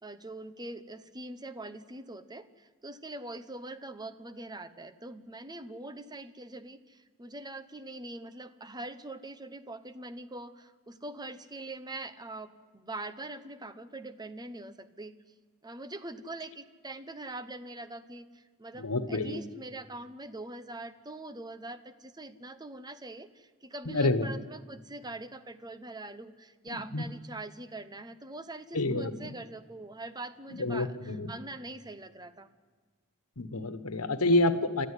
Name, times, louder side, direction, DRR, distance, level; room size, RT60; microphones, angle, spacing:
voice 1, 0.0-15.1 15.6-32.5, right 2 dB, 20° right, 12 dB, 1.0 m, -43 dB
voice 2, 18.8-19.4 23.8-24.3 26.7-27.0 28.7-29.3 30.5-31.3 33.4-34.9, left 2 dB, 85° left, 11 dB, 1.4 m, -28 dB
29.5 x 13.5 x 9.9 m, 1.5 s
head